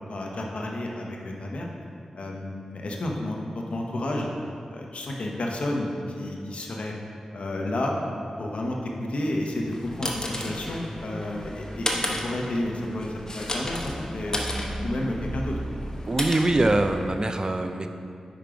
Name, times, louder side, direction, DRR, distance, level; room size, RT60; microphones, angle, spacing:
voice 1, 0.1-1.7 2.1-4.3 4.7-6.9 7.3-7.9 8.4-14.4 14.8-15.6, left 1 dB, 65° left, 0 dB, 0.8 m, -31 dB
sound 1, 9.5-17.3, left 1 dB, 30° left, 0.8 m, -33 dB
voice 2, 16.1-17.9, right 2 dB, 35° right, 7 dB, 0.4 m, -23 dB
5.1 x 4.5 x 5.0 m, 2.4 s
cardioid pair, 50°, 2 cm